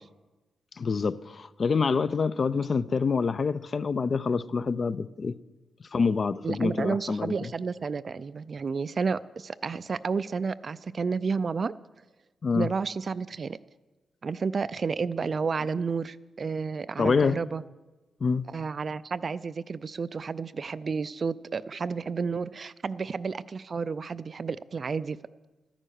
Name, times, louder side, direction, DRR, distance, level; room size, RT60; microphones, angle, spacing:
voice 1, 0.8-5.3 5.9-7.5 12.4-12.7 17.0-17.4 18.2-18.5, left 5 dB, 40° left, 0.4 m, -26 dB
voice 2, 6.4-11.7 12.5-13.6 14.2-17.6 18.5-25.2, right 5 dB, 40° right, 0.3 m, -31 dB
13.5 x 10.0 x 6.4 m
wide cardioid pair, 140°, 0 cm